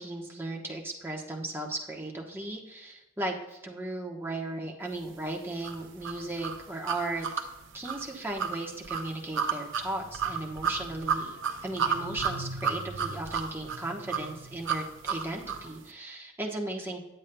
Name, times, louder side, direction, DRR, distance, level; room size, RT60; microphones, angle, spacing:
voice 1, 0.0-7.3 7.7-11.4 11.6-17.0, right 2 dB, 10° right, -1 dB, 1.0 m, -36 dB
sound 1, 5.6-15.7, right 6 dB, 60° right, 0.6 m, -32 dB
10.0 x 8.2 x 2.2 m, 0.99 s
head